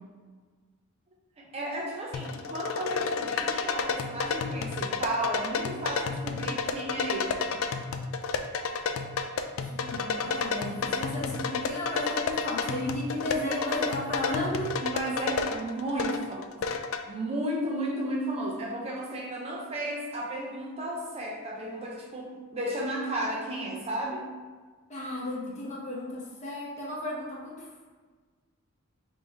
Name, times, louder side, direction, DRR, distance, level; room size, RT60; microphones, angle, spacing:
voice 1, 1.4-7.4 14.8-16.6 17.1-24.2, right 1 dB, 30° right, -2 dB, 0.5 m, -33 dB
sound 1, 2.1-17.0, left 4 dB, 65° left, 0.3 m, -31 dB
voice 2, 9.6-14.7 24.9-27.8, left 1 dB, 30° left, -4 dB, 0.9 m, -34 dB
3.7 x 2.6 x 4.4 m, 1.4 s
head